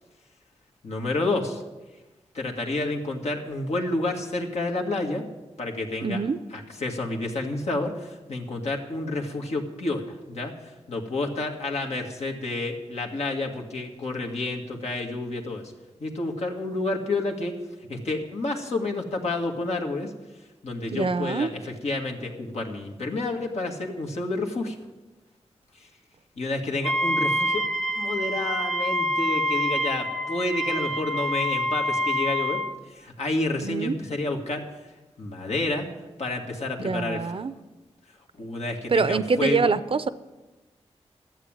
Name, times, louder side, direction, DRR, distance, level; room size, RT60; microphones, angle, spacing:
voice 1, 0.8-1.6 2.3-5.2 5.6-6.2 6.5-10.5 10.9-15.7 16.0-17.5 17.9-20.1 20.6-24.8 26.4-27.6 28.0-32.6 32.9-34.6 35.2-35.9 36.2-37.3 38.4-39.7, left 2 dB, 70° left, 1 dB, 1.9 m, -29 dB
voice 2, 6.0-6.4 20.9-21.5 33.6-34.0 36.8-37.5 38.9-40.1, right 4 dB, 50° right, 14 dB, 0.6 m, -25 dB
Wind instrument woodwind instrument, 26.8-32.8, equal, 10° left, 1.0 m, -26 dB
13.0 x 7.7 x 8.8 m, 1.2 s
wide cardioid pair, 75°, 11 cm